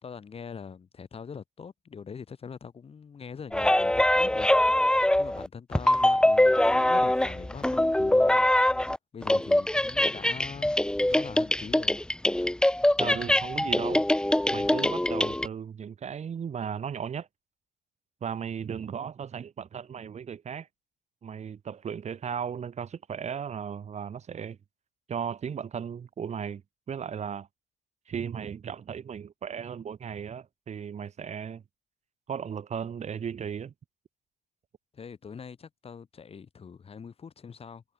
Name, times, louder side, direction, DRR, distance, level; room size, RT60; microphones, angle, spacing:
voice 1, 0.0-4.5 5.2-8.5 9.1-10.8 11.1-12.0 34.9-37.8, left 6 dB, 35° left, 5.3 m, -42 dB
sound 1, 3.5-5.5 5.7-9.0 9.2-15.5, left 1 dB, 5° left, 1.2 m, -23 dB
voice 2, 13.0-14.0 14.5-17.3 18.2-20.7 21.2-24.6 25.1-26.6 26.9-27.5 28.1-31.6 32.3-33.7, right 7 dB, 40° right, 4.1 m, -36 dB
cardioid pair, 110°, 17 cm